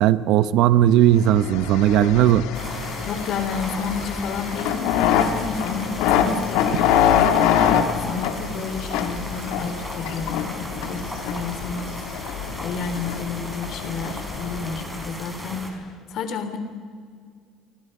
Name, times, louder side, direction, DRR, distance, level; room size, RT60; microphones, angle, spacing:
voice 1, 0.0-2.5, right 12 dB, 70° right, 14 dB, 0.9 m, -17 dB
sound 1, 1.2-15.0, left 9 dB, 85° left, 2.0 m, -25 dB
sound 2, 2.5-15.7, right 1 dB, 10° right, 4.6 m, -36 dB
voice 2, 3.0-11.9 12.2-16.6, left 5 dB, 60° left, 9 dB, 3.1 m, -31 dB
30.0 x 24.0 x 5.5 m, 2.1 s
cardioid pair, 120°, 0 cm